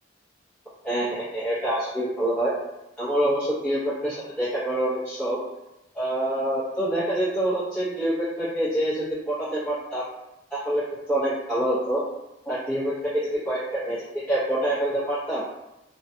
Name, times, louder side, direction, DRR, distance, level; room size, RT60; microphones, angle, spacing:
voice 1, 0.8-2.5 3.0-5.4 5.9-10.1 10.5-12.0 12.4-15.4, right 1 dB, 5° left, -15 dB, 0.8 m, -26 dB
2.4 x 2.2 x 2.6 m, 0.92 s
head